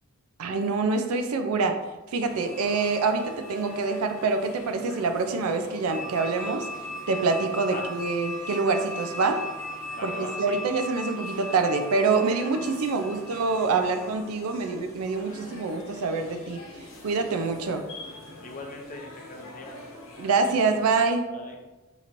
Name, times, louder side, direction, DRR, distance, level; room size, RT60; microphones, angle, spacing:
voice 1, 0.4-1.8 2.1-6.7 7.1-9.4 10.0-16.6 17.0-17.8 20.2-21.3, right 4 dB, 90° right, 6 dB, 0.4 m, -26 dB
sound 1, 2.2-21.0, left 2 dB, 65° left, 0.9 m, -45 dB
sound 2, 2.5-5.0 5.9-14.2, left 1 dB, 40° right, 1.3 m, -39 dB
voice 2, 9.9-10.6 18.4-19.9 21.3-21.5, left 2 dB, 35° left, 1 dB, 0.6 m, -40 dB
4.4 x 2.9 x 2.5 m, 1.1 s
head